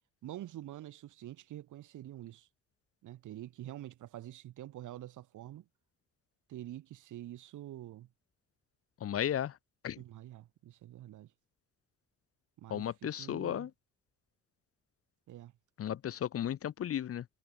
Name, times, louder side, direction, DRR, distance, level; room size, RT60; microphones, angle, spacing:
voice 1, 0.2-2.5 3.0-5.6 6.5-8.1 10.0-11.3 12.6-13.7 15.3-15.5, right 13 dB, 80° right, 4.7 m, -47 dB
voice 2, 9.0-9.5 9.8-10.0 12.7-13.7 15.8-17.2, left 10 dB, 50° left, 0.8 m, -34 dB
cardioid pair, 90°, 30 cm